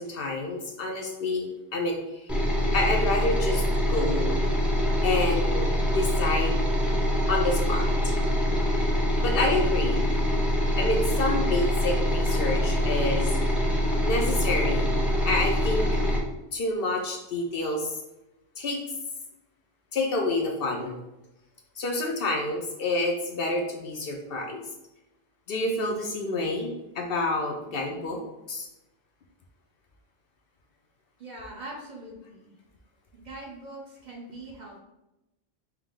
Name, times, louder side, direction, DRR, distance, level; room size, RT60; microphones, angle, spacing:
voice 1, 0.0-2.3 2.7-3.6 3.9-4.4 5.0-6.6 7.3-8.1 9.2-10.0 10.8-13.4 14.0-14.9 15.2-15.9 16.5-18.0 18.6-18.8 19.9-20.9 21.8-24.6 25.5-28.2 28.5-28.7, left 2 dB, 65° left, 2 dB, 0.7 m, -28 dB
sound 1, 2.3-16.2, equal, ahead, 0.5 m, -24 dB
voice 2, 31.2-32.5 33.1-34.8, right 1 dB, 45° right, -3 dB, 0.9 m, -42 dB
4.5 x 2.1 x 3.6 m, 0.93 s
omnidirectional pair, 1.1 m